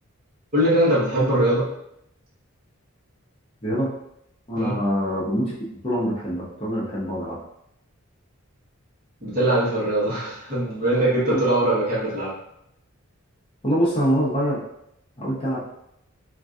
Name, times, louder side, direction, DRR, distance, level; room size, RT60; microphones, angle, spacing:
voice 1, 0.5-1.7 4.6-4.8 9.2-12.3, right 1 dB, 40° right, -8 dB, 1.2 m, -21 dB
voice 2, 4.5-7.4 11.3-11.4 13.6-14.6 15.2-15.6, equal, 25° left, -8 dB, 0.8 m, -24 dB
3.7 x 2.6 x 2.4 m, 0.77 s
head